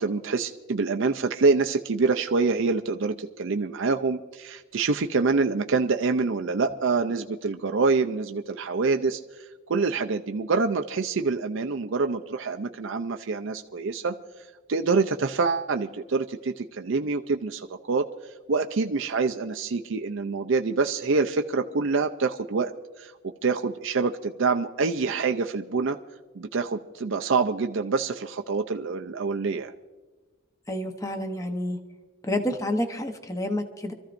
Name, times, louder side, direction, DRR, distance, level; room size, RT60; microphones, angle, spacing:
voice 1, 0.0-9.2 9.7-14.1 14.7-18.1 18.5-22.7 23.0-23.1 23.4-26.0 26.4-29.7, right 4 dB, 60° right, 5 dB, 0.5 m, -26 dB
voice 2, 30.7-31.8 32.2-33.9, left 1 dB, 15° left, 5 dB, 0.9 m, -29 dB
27.0 x 14.0 x 2.6 m, 1.2 s
head